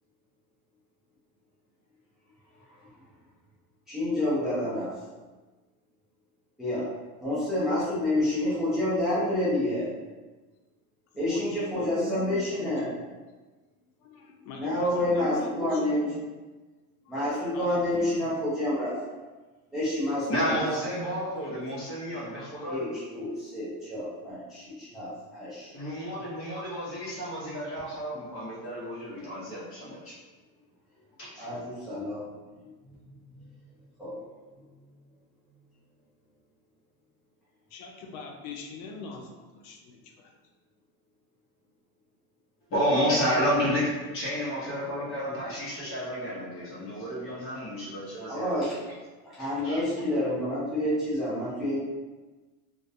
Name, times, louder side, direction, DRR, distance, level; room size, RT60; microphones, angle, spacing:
voice 1, 3.9-4.9 6.6-6.9 7.2-9.9 11.2-12.9 14.6-16.1 17.1-19.0 19.7-20.6 22.7-25.7 31.3-32.2 32.6-33.5 34.0-34.2 48.3-48.8 49.2-51.8, left 1 dB, ahead, -11 dB, 0.4 m, -29 dB
voice 2, 11.2-13.0 14.0-16.2 17.0-17.2 17.5-18.1 37.7-40.3, left 4 dB, 85° left, 2 dB, 0.6 m, -40 dB
voice 3, 20.3-22.8 25.7-30.1 31.2-31.4 42.7-43.9 44.1-48.7 49.6-49.8, equal, 30° left, -6 dB, 0.8 m, -30 dB
2.3 x 2.1 x 2.6 m, 1.2 s
cardioid pair, 150°, 41 cm